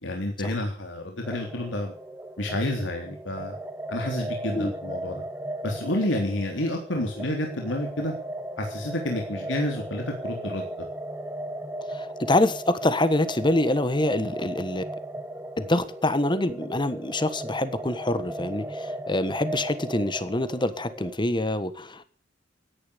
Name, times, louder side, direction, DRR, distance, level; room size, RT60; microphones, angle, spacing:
voice 1, 0.0-1.9 2.4-3.6 3.9-5.2 5.6-8.1 8.6-10.9, left 1 dB, 80° left, 2 dB, 3.6 m, -29 dB
sound 1, 1.2-21.1, right 1 dB, 10° right, 1.7 m, -37 dB
voice 2, 11.9-14.8 15.6-22.0, left 1 dB, 25° left, 13 dB, 1.5 m, -25 dB
17.0 x 10.5 x 6.8 m, 0.40 s
head